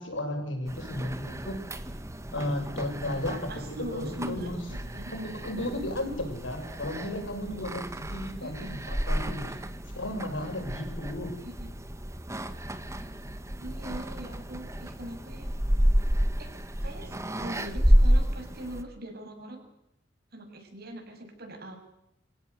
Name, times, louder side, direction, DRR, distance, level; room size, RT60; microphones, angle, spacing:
voice 1, 0.0-1.6 2.3-4.6 5.1-9.6 10.0-11.3, left 1 dB, 90° left, 4 dB, 7.1 m, -34 dB
sound 1, 0.7-18.8, equal, 15° right, 1.6 m, -30 dB
voice 2, 3.3-5.1 8.4-8.8 11.4-11.5 13.6-15.5 16.4-16.5 16.8-19.6 20.3-21.8, right 1 dB, 55° right, 4 dB, 7.1 m, -41 dB
26.0 x 17.0 x 8.3 m, 0.81 s
head